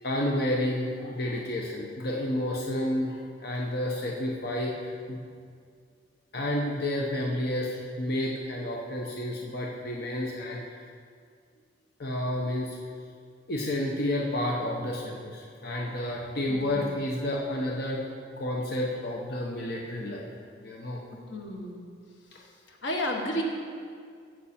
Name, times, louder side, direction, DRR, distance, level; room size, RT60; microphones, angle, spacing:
voice 1, 0.0-5.2 6.3-10.6 12.0-12.8 13.5-18.0 18.4-20.3 20.6-21.0, left 1 dB, 60° left, -2 dB, 1.0 m, -30 dB
voice 2, 16.5-16.9 21.3-21.9 22.3-23.4, left 1 dB, 85° left, 1 dB, 1.5 m, -33 dB
15.5 x 6.1 x 4.4 m, 2.2 s
head